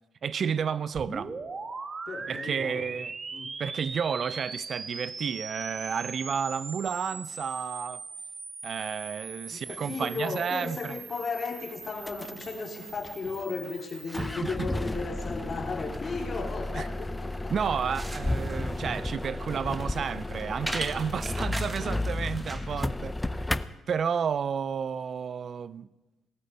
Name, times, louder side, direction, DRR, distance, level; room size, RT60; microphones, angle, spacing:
voice 1, 0.2-1.3 2.3-3.1 3.6-8.0 8.6-10.9 14.2-14.7 16.8-16.9 17.5-23.6 23.9-25.9, right 7 dB, 50° right, 0.4 m, -31 dB
sound 1, 0.9-14.3, right 4 dB, 35° right, 1.5 m, -40 dB
voice 2, 2.1-2.9 3.3-3.5 9.5-17.5, left 4 dB, 40° left, 3.6 m, -35 dB
sound 2, 10.8-10.9 11.5-11.6 11.9-12.5 12.8-13.8 14.1-23.7, left 2 dB, 10° left, 0.6 m, -33 dB
sound 3, 17.6-22.7, right 1 dB, 10° right, 1.6 m, -39 dB
18.5 x 8.5 x 9.2 m
cardioid pair, 90°, 0 cm